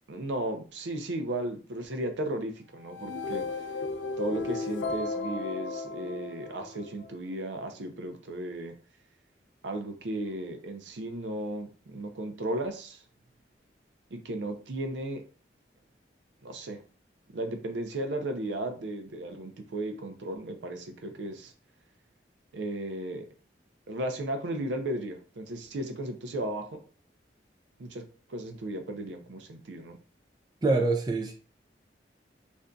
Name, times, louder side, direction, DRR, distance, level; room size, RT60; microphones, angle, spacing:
voice 1, 0.1-3.4 4.2-8.8 9.6-13.0 14.1-15.2 16.4-16.8 17.3-21.5 22.5-23.3 23.9-26.8 27.8-30.0, right 1 dB, 85° right, 6 dB, 0.5 m, -35 dB
sound 1, 2.8-7.1, left 3 dB, 85° left, 0.5 m, -35 dB
voice 2, 30.6-31.3, right 3 dB, 25° right, 4 dB, 0.3 m, -25 dB
2.6 x 2.2 x 3.7 m, 0.38 s
head